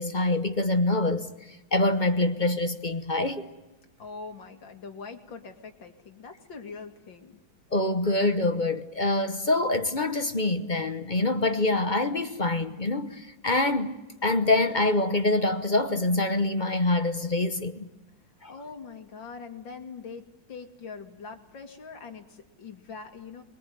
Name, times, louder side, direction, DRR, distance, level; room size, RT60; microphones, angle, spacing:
voice 1, 0.0-3.5 7.7-14.0 14.2-17.9 18.4-18.5, left 2 dB, 30° left, 0.9 m, -25 dB
voice 2, 4.0-7.4 18.5-23.4, left 5 dB, 70° left, 3.0 m, -43 dB
25.0 x 21.5 x 9.3 m
omnidirectional pair, 2.2 m